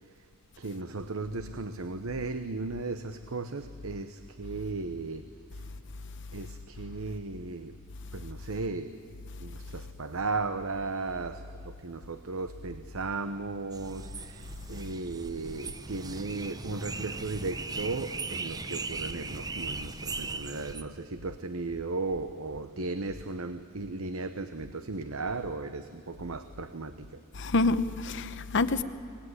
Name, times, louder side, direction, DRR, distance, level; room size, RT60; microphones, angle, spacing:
voice 1, 0.6-5.6 6.3-7.8 8.1-9.0 9.4-27.2, right 3 dB, 75° right, 0.9 m, -36 dB
sound 1, 13.7-20.8, right 3 dB, 20° right, 0.7 m, -38 dB
voice 2, 27.3-28.8, left 3 dB, 60° left, 0.8 m, -27 dB
25.0 x 19.0 x 9.8 m
head